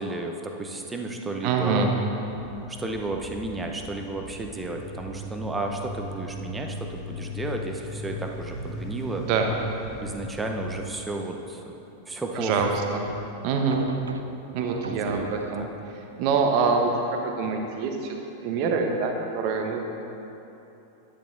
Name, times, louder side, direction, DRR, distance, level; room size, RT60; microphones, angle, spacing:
voice 1, 0.0-1.9 2.7-9.3 10.0-12.7 14.8-15.7, right 2 dB, 10° right, 2 dB, 0.7 m, -33 dB
voice 2, 1.4-1.9 9.2-9.5 12.4-13.0 13.4-13.8 14.5-15.7 16.2-18.2 18.4-19.8, right 4 dB, 45° right, 3 dB, 0.9 m, -25 dB
sound 1, 2.2-10.8, left 1 dB, 5° left, 1.6 m, -38 dB
sound 2, 12.4-15.7, right 4 dB, 75° right, 0.3 m, -37 dB
10.5 x 10.0 x 2.6 m, 3.0 s
figure-of-eight pair, 90°, 0 cm